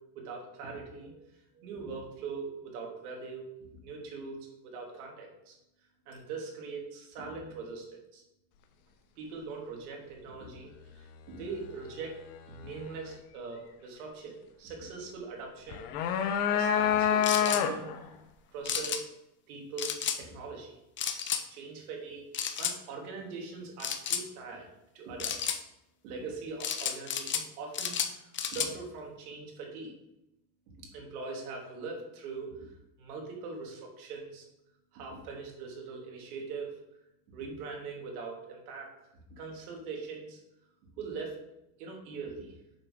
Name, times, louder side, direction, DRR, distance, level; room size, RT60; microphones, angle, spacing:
voice 1, 0.1-1.3 1.5-3.5 3.8-4.4 4.6-5.6 6.1-8.2 9.2-12.2 12.5-15.9 16.2-17.9 18.5-19.1 19.5-20.7 21.1-22.2 22.6-24.7 24.9-25.3 26.0-29.9 30.8-32.7 33.0-34.5 34.9-36.8 37.3-38.9 39.3-40.4 41.0-41.4 41.8-42.5, right 4 dB, 85° right, 0 dB, 2.3 m, -42 dB
sound 1, 15.7-18.0, left 9 dB, 85° left, 1.0 m, -27 dB
sound 2, 17.2-17.6 18.7-19.0 19.8-20.2 21.0-21.4 22.3-22.8 23.8-24.2 25.2-25.6 26.6-27.5 27.7-28.7, left 8 dB, 25° left, 0.7 m, -32 dB
6.5 x 6.0 x 3.7 m, 0.88 s
supercardioid pair, 120°, 44 cm